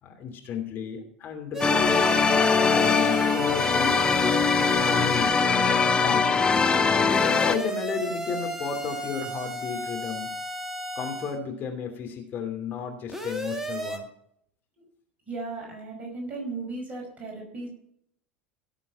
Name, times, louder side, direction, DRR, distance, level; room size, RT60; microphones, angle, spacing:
voice 1, 0.0-5.8 6.0-6.5 6.9-10.3 10.9-14.1, left 6 dB, 35° left, 3 dB, 2.8 m, -34 dB
sound 1, 1.5-5.5 7.1-11.4 13.1-14.0, equal, 5° right, 1.9 m, -34 dB
sound 2, 1.6-7.6, left 5 dB, 15° left, 1.0 m, -22 dB
voice 2, 15.3-17.7, right 3 dB, 25° right, 0 dB, 5.8 m, -36 dB
17.5 x 7.5 x 4.3 m, 0.68 s
figure-of-eight pair, 80°, 6 cm